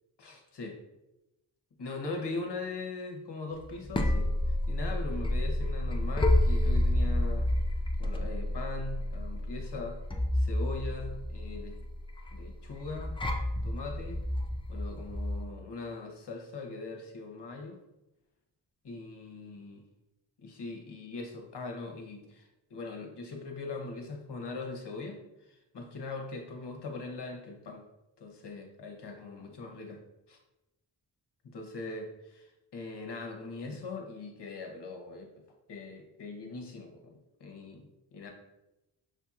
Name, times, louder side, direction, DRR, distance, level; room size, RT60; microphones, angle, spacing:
voice 1, 0.2-0.8 1.8-7.5 8.0-10.0 10.3-11.8 12.3-13.2 13.6-14.2 14.7-17.8 18.8-19.8 20.4-27.8 28.2-30.4 31.4-38.3, left 3 dB, 60° left, 2 dB, 1.0 m, -41 dB
sound 1, 3.5-15.4, left 1 dB, 10° left, 0.4 m, -30 dB
6.2 x 2.8 x 2.4 m, 0.93 s
cardioid pair, 75°, 46 cm